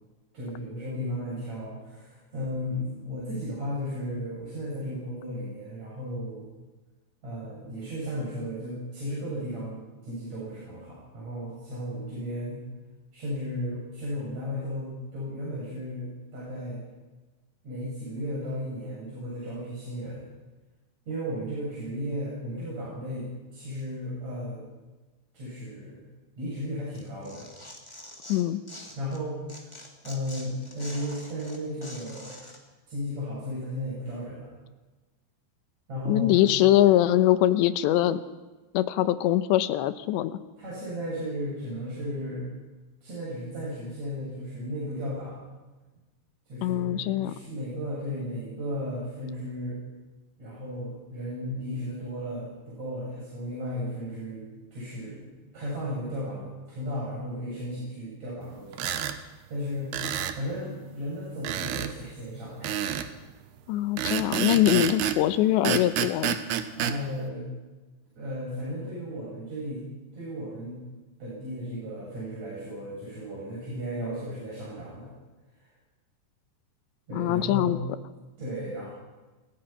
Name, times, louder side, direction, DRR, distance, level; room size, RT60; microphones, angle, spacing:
voice 1, 0.3-6.5 7.2-12.6 13.1-16.8 17.6-20.2 21.1-24.6 25.3-26.0 26.4-27.5 28.9-32.4 32.9-34.5 35.9-36.4 40.6-42.5 43.0-45.4 46.5-49.8 50.4-54.4 54.7-55.3 55.5-62.8 66.8-67.4 68.2-69.8 70.1-70.8 71.2-75.1 75.6-75.7 77.1-77.8 78.4-78.9, equal, 35° right, -6 dB, 8.1 m, -35 dB
Tearing, 26.9-29.2 29.5-32.6, left 1 dB, 10° left, 2.5 m, -45 dB
voice 2, 28.3-28.6 36.1-38.2 38.7-40.4 46.6-47.4 63.7-66.4 77.1-77.8, left 13 dB, 80° left, 13 dB, 3.1 m, -23 dB
sound 1, 58.7-59.2 59.9-60.4 61.4-61.9 62.6-63.1 64.0-65.2 65.6-67.0, right 10 dB, 70° right, 3.0 m, -28 dB
27.5 x 22.5 x 5.8 m, 1.2 s
omnidirectional pair, 5.2 m